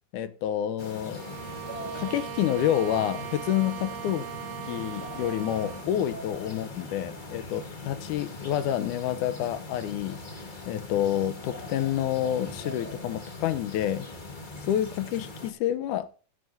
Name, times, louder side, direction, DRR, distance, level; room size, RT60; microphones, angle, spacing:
voice 1, 0.1-1.3 1.8-4.3 4.7-14.1 14.7-16.1, left 11 dB, 80° left, 2.2 m, -28 dB
sound 1, 0.8-15.5, left 2 dB, 60° left, 0.4 m, -41 dB
Bowed string instrument, 1.1-6.0, right 13 dB, 80° right, 2.2 m, -39 dB
15.0 x 9.3 x 2.7 m
omnidirectional pair, 3.6 m